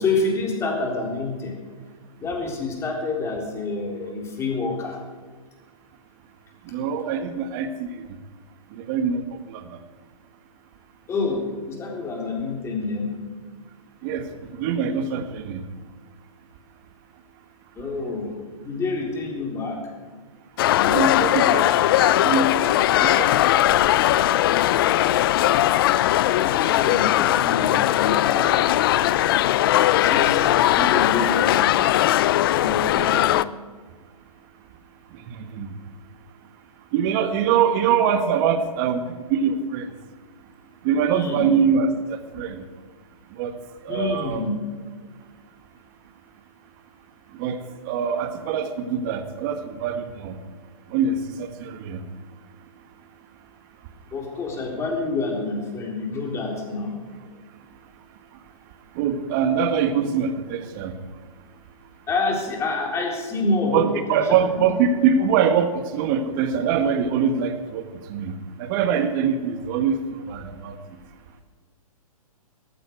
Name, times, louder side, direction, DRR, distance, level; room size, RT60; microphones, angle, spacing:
voice 1, 0.0-1.5 2.2-5.0 11.1-13.1 17.8-18.4 18.6-19.8 26.3-28.8 30.0-31.7 32.5-33.2 41.1-41.5 43.9-44.5 54.1-57.0 62.1-64.7, left 3 dB, 15° left, -1 dB, 3.7 m, -28 dB
voice 2, 6.7-8.0 8.7-9.2 9.5-9.6 14.0-14.3 14.6-15.6 20.9-23.8 24.1-24.6 24.9-25.0 35.3-35.7 36.9-39.9 40.8-41.9 42.3-42.6 43.4-43.5 43.8-44.4 47.4-50.4 50.9-52.0 58.9-61.0 63.7-70.8, right 7 dB, 35° right, 8 dB, 1.6 m, -24 dB
sound 1, 20.6-33.4, left 13 dB, 40° left, 0.5 m, -19 dB
18.0 x 14.5 x 4.7 m, 1.5 s
hypercardioid pair, 140°, 19 cm